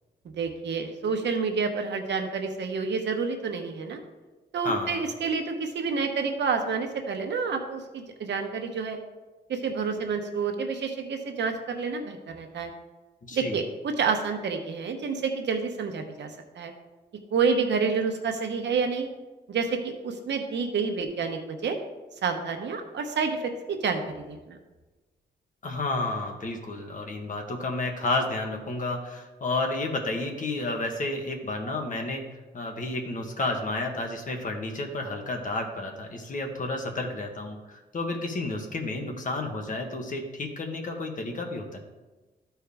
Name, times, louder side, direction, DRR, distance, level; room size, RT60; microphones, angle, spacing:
voice 1, 0.3-4.0 4.5-9.0 9.5-12.7 13.3-16.7 17.3-19.1 19.5-21.7 22.2-24.6, right 5 dB, 85° right, 4 dB, 1.0 m, -29 dB
voice 2, 4.6-5.0 13.2-13.6 25.6-32.2 32.5-41.8, left 2 dB, 50° left, 3 dB, 1.2 m, -31 dB
13.5 x 4.6 x 3.5 m, 1.2 s
wide cardioid pair, 145°, 18 cm